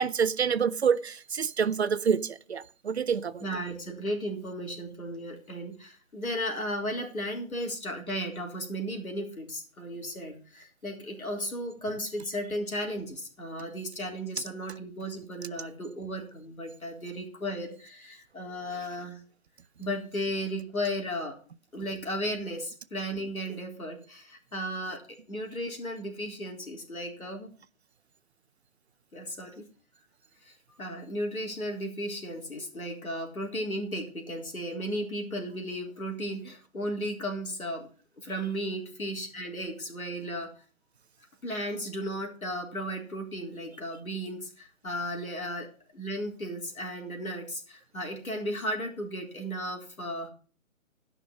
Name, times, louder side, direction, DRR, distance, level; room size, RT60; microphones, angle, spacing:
voice 1, 0.0-3.4, right 6 dB, 50° right, 0.6 m, -27 dB
voice 2, 3.4-19.2 19.8-21.4 21.7-27.5 29.1-29.6 30.4-37.9 38.2-40.5 41.4-50.3, equal, 80° left, 3.8 m, -35 dB
12.5 x 5.9 x 6.6 m
figure-of-eight pair, 140°, 42 cm